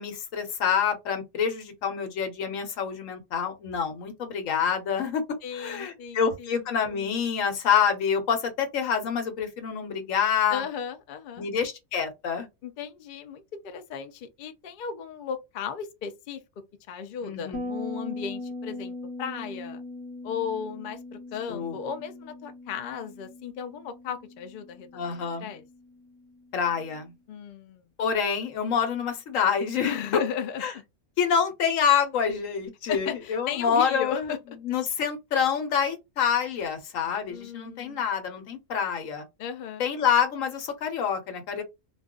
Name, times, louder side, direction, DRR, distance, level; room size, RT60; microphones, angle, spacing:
voice 1, 0.0-5.2 5.5-10.6 11.4-12.5 17.2-17.7 21.5-21.8 24.9-25.5 26.5-27.1 28.0-29.9 30.6-30.7 31.2-34.3 34.6-39.2 39.8-41.6, left 7 dB, 70° left, 1.1 m, -27 dB
voice 2, 5.4-6.7 10.5-11.5 12.6-16.4 16.9-19.8 20.2-25.6 27.3-27.8 29.8-30.8 32.9-34.4 37.3-38.0 39.4-39.8, left 7 dB, 90° left, 0.4 m, -35 dB
Bass guitar, 17.5-26.9, left 2 dB, 25° left, 0.9 m, -40 dB
2.3 x 2.3 x 3.6 m
omnidirectional pair, 1.5 m